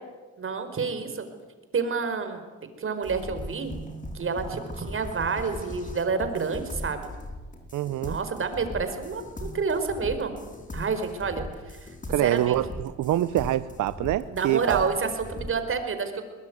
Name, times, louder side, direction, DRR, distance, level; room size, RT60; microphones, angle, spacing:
voice 1, 0.4-1.3 1.7-2.4 2.8-3.7 4.1-7.1 8.1-10.3 10.7-11.9 12.2-12.6 14.3-16.2, right 5 dB, 45° right, 8 dB, 4.8 m, -29 dB
sound 1, 3.0-15.6, left 1 dB, 25° left, 4.6 m, -39 dB
voice 2, 7.7-8.2 12.1-14.8, right 14 dB, 80° right, 15 dB, 0.8 m, -25 dB
22.5 x 21.0 x 9.6 m, 1.3 s
cardioid pair, 90°, 30 cm